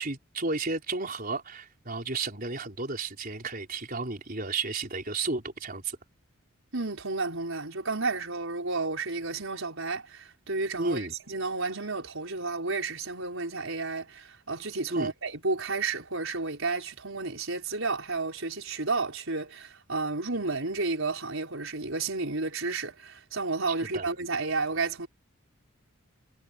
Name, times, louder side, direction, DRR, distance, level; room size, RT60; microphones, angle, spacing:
voice 1, 0.0-6.0 10.8-11.1 14.9-15.1 23.9-24.1, right 3 dB, 40° right, 4.4 m, -32 dB
voice 2, 6.7-25.1, right 3 dB, 65° right, 5.3 m, -32 dB
head